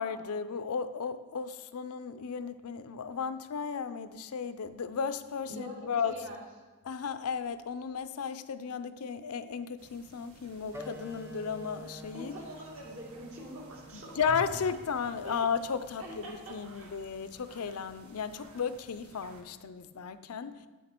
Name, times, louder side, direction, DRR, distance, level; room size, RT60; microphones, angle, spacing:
voice 1, 0.0-6.2 6.8-12.4 13.9-20.7, left 6 dB, 85° left, 11 dB, 0.5 m, -34 dB
voice 2, 5.5-6.4 12.1-14.2 15.2-15.4 16.0-16.9, equal, 70° right, -2 dB, 2.1 m, -44 dB
sound 1, 9.8-19.4, right 1 dB, 85° right, 1.3 m, -53 dB
sound 2, 10.7-15.8, equal, 10° right, 0.6 m, -49 dB
8.7 x 7.2 x 4.4 m, 1.3 s
head